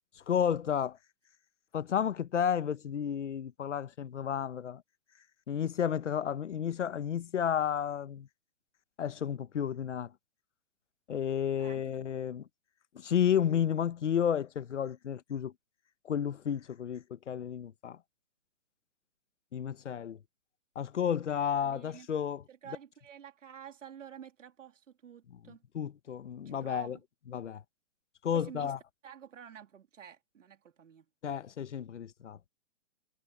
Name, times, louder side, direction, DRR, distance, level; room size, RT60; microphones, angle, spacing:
voice 1, 0.2-1.0 1.7-4.8 5.5-8.3 9.0-10.1 11.1-12.5 12.9-15.5 16.0-18.0 19.5-20.2 20.7-22.4 25.7-27.0 27.3-27.6 28.2-28.8 31.2-32.4, left 8 dB, 65° left, 1.2 m, -32 dB
voice 2, 11.6-12.1 21.5-22.1 22.5-25.6 26.4-27.0 28.3-28.7 29.0-31.1, right 9 dB, 75° right, 3.0 m, -50 dB
hypercardioid pair, 180°, 38 cm